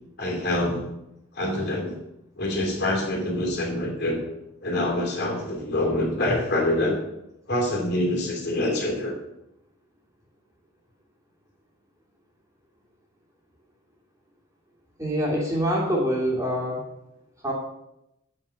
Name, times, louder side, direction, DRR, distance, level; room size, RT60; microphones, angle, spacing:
voice 1, 0.2-0.9 1.3-2.0 2.4-4.3 4.6-7.0 7.5-9.1, left 1 dB, 50° left, 0 dB, 2.9 m, -25 dB
voice 2, 15.0-16.9 17.4-17.5, equal, 15° right, -3 dB, 2.7 m, -25 dB
8.8 x 7.1 x 7.0 m, 0.86 s
head